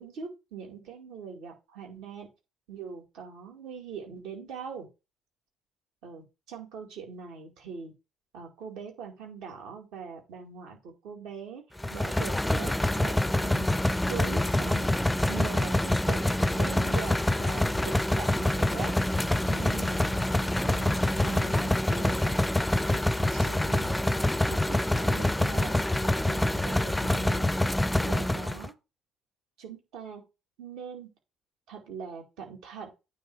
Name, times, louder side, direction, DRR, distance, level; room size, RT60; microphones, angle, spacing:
voice 1, 0.0-2.3 2.7-4.9 6.0-7.9 8.3-11.6 11.9-13.7 14.1-15.0 15.3-16.2 16.5-19.0 19.5-22.4 22.9-24.1 24.5-27.6 28.0-28.7 29.6-30.2 30.6-31.1 31.7-32.9, right 6 dB, 65° right, 2 dB, 2.0 m, -42 dB
sound 1, 11.8-28.7, left 1 dB, 10° left, 0.4 m, -26 dB
9.2 x 3.3 x 4.7 m, 0.26 s
figure-of-eight pair, 50°, 0 cm